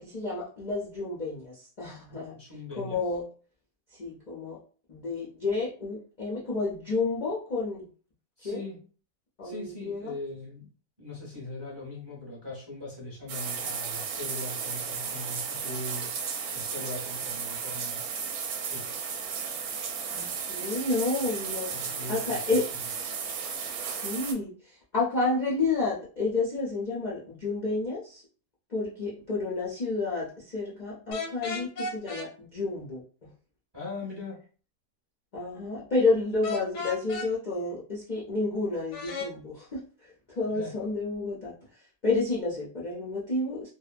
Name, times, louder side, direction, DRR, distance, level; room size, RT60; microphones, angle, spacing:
voice 1, 0.0-2.4 2.8-3.3 3.9-4.6 4.9-7.8 8.4-8.6 9.4-10.1 20.1-22.6 24.0-28.2 28.7-33.0 35.3-39.8 40.3-41.5 42.0-43.7, left 3 dB, 55° left, -6 dB, 0.5 m, -30 dB
voice 2, 2.3-3.0 8.4-8.8 9.4-10.7 11.0-16.1 16.5-18.1 18.6-18.9 21.7-22.8 33.7-34.4 40.5-40.7, left 2 dB, 20° right, -5 dB, 0.7 m, -40 dB
sound 1, 13.3-24.3, right 6 dB, 75° right, 1.0 m, -34 dB
sound 2, 31.1-32.3 36.4-37.3 38.9-39.3, left 4 dB, 85° left, 1.3 m, -34 dB
2.7 x 2.1 x 2.4 m, 0.39 s
omnidirectional pair, 1.7 m